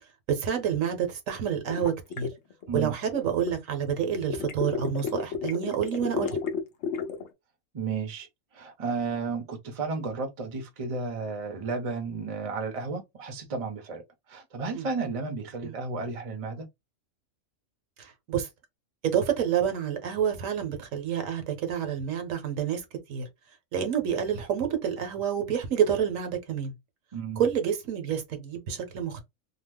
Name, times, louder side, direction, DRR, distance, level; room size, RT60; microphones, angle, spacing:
voice 1, 0.3-2.3 2.7-6.4 14.7-14.9 15.6-15.8 18.0-18.5 19.0-23.3 23.7-26.7 27.4-29.2, right 8 dB, 75° right, 1.2 m, -28 dB
sound 1, 1.7-3.5 4.1-7.3, left 6 dB, 60° left, 0.9 m, -32 dB
voice 2, 7.7-8.3 8.5-14.0 14.3-16.7 27.1-27.4, right 4 dB, 35° right, 0.6 m, -33 dB
2.8 x 2.0 x 3.4 m
omnidirectional pair, 1.4 m